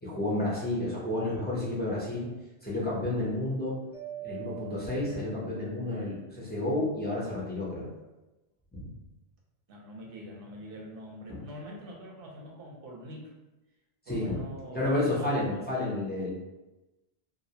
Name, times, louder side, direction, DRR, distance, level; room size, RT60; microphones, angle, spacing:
voice 1, 0.0-2.3 2.6-3.8 4.2-7.9 8.7-8.9 11.3-11.4 14.1-14.4 14.7-16.3, left 1 dB, 15° left, -7 dB, 0.4 m, -31 dB
Mallet percussion, 3.9-6.0, right 16 dB, 90° left, 1.0 m, -43 dB
voice 2, 9.7-13.3 14.1-14.8 15.2-15.7, equal, 65° right, -2 dB, 0.8 m, -44 dB
2.4 x 2.0 x 2.7 m, 1.0 s
omnidirectional pair, 1.1 m